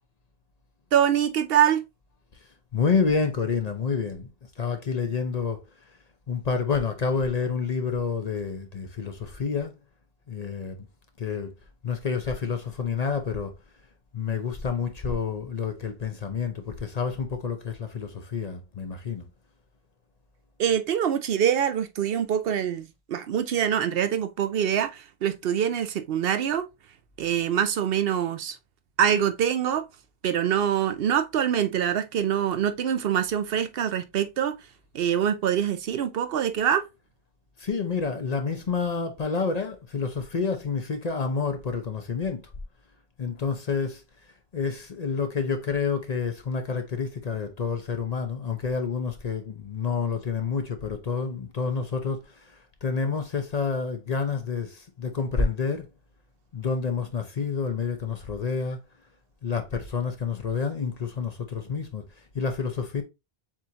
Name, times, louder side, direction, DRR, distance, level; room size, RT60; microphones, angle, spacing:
voice 1, 0.9-1.8 20.6-26.7 27.2-28.5 29.0-29.8 30.2-34.5 34.9-36.8, right 9 dB, 70° right, 0.7 m, -24 dB
voice 2, 2.7-4.3 4.6-5.6 6.3-9.8 10.3-10.9 11.2-11.5 11.8-13.5 14.1-19.3 37.6-42.5 43.2-44.0 44.5-55.9 56.5-58.8 59.4-62.1 62.3-63.0, left 5 dB, 45° left, 0.7 m, -28 dB
7.3 x 2.5 x 2.8 m
omnidirectional pair, 1.1 m